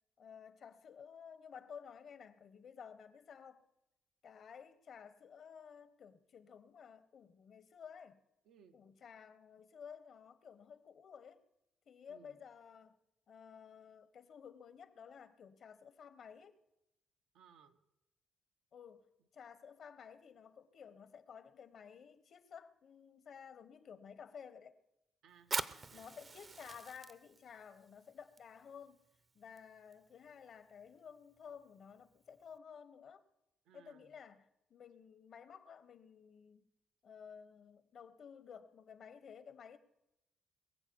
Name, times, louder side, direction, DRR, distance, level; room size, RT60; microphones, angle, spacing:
voice 1, 0.2-3.6 4.2-8.2 8.7-11.4 11.9-13.0 13.3-16.6 18.7-19.1 19.3-24.8 25.9-29.0 29.3-33.2 33.7-36.6 37.0-39.8, left 7 dB, 60° left, 1.0 m, -54 dB
voice 2, 8.4-8.8 12.1-12.4 17.3-17.8 25.2-26.2 33.6-34.1, right 7 dB, 85° right, 1.0 m, -63 dB
Fire, 25.4-32.6, right 4 dB, 35° right, 0.7 m, -47 dB
21.5 x 7.5 x 6.9 m
cardioid pair, 90°, 0 cm